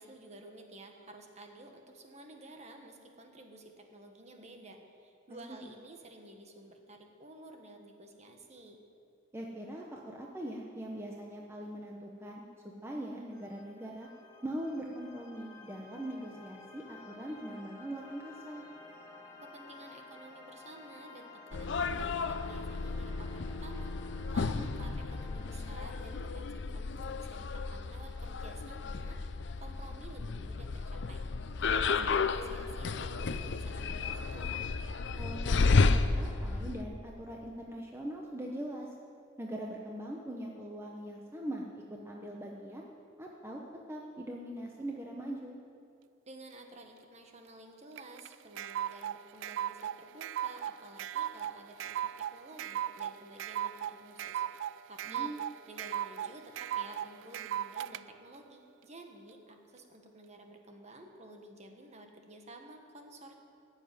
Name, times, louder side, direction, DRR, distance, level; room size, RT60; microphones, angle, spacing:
voice 1, 0.0-8.8 19.4-23.9 24.3-31.2 31.6-34.5 46.3-63.3, right 1 dB, 35° right, 3 dB, 1.5 m, -52 dB
voice 2, 9.3-12.5 12.8-14.1 14.4-18.6 24.4-24.7 31.9-32.1 35.2-38.9 39.4-41.6 41.9-42.9 43.2-43.6 43.9-45.6 55.1-55.4, right 1 dB, 15° right, -1 dB, 1.0 m, -41 dB
sound 1, 13.3-26.2, left 3 dB, 20° left, 1.7 m, -53 dB
sound 2, 21.5-36.8, left 4 dB, 65° left, 0.5 m, -32 dB
sound 3, 48.0-58.0, right 10 dB, 75° right, 0.3 m, -37 dB
15.5 x 7.3 x 9.7 m, 2.4 s
head